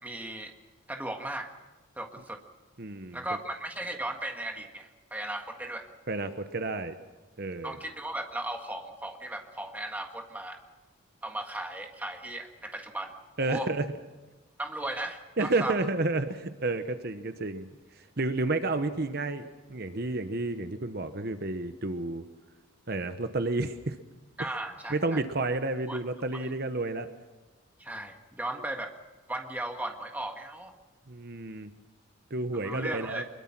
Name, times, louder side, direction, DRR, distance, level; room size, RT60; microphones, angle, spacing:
voice 1, 0.0-0.5 0.9-1.5 2.0-2.4 3.1-5.9 7.6-10.6 11.2-13.7 14.6-15.8 24.4-25.2 25.9-26.0 26.4-26.5 27.8-28.9 29.3-30.7 32.5-33.2, right 1 dB, 10° right, 3 dB, 1.6 m, -36 dB
voice 2, 2.8-3.2 6.1-6.9 7.4-7.8 13.4-13.8 15.4-17.7 18.0-22.2 22.9-24.0 24.9-27.1 31.1-31.7 32.3-33.2, right 2 dB, 50° right, 9 dB, 1.0 m, -31 dB
24.0 x 22.0 x 6.0 m, 1.2 s
head